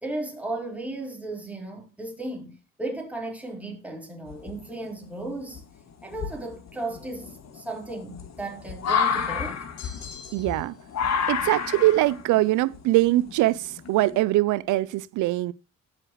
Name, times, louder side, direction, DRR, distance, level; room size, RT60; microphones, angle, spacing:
voice 1, 0.0-5.6 6.0-9.6, right 2 dB, 5° right, 4.2 m, -35 dB
sound 1, 4.3-4.9 5.5-5.6 6.1-14.2, left 6 dB, 60° left, 2.1 m, -30 dB
sound 2, 9.8-10.8, left 6 dB, 90° left, 5.4 m, -44 dB
voice 2, 10.3-10.7 11.3-15.5, right 17 dB, 85° right, 0.5 m, -22 dB
18.5 x 6.5 x 3.1 m
cardioid pair, 90°, 30 cm